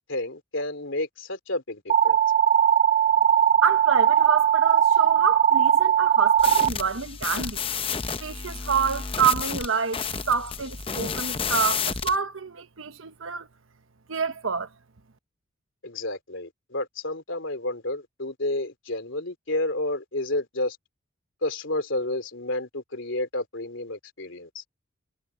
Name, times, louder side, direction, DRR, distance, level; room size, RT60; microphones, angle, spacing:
voice 1, 0.1-2.2 15.8-20.8 21.4-24.6, left 1 dB, 70° left, 3.2 m, -30 dB
sound 1, 1.9-6.7, right 10 dB, 35° right, 1.0 m, -19 dB
voice 2, 3.6-7.6 8.2-10.0 10.3-13.5 14.1-14.7, right 6 dB, 80° right, 1.1 m, -27 dB
sound 2, 6.4-12.2, left 6 dB, 25° left, 0.7 m, -31 dB
head